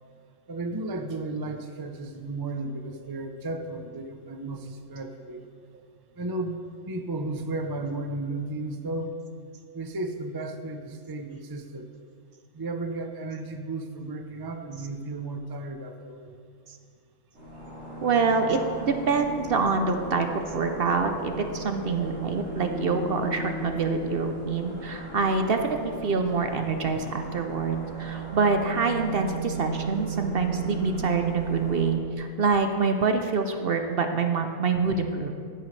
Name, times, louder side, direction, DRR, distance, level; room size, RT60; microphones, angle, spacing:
voice 1, 0.5-5.4 6.2-6.6 6.9-9.2 9.7-11.9 12.5-16.3, right 2 dB, 35° right, 6 dB, 0.4 m, -34 dB
sound 1, 17.3-31.9, right 4 dB, 85° right, 4.0 m, -35 dB
voice 2, 18.0-18.6 18.9-35.3, right 4 dB, 55° right, 6 dB, 0.7 m, -26 dB
14.5 x 10.0 x 3.2 m, 2.2 s
omnidirectional pair, 1.5 m